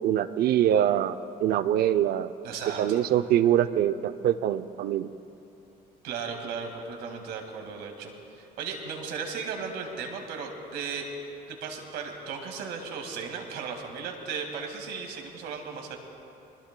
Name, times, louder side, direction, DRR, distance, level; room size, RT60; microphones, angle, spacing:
voice 1, 0.0-1.2 1.4-2.3 2.8-5.1, right 11 dB, 65° right, 12 dB, 0.5 m, -24 dB
voice 2, 2.4-3.0 6.0-11.1 11.5-16.0, right 5 dB, 80° right, 3 dB, 2.0 m, -36 dB
25.0 x 20.5 x 2.2 m, 2.9 s
cardioid pair, 110°, 17 cm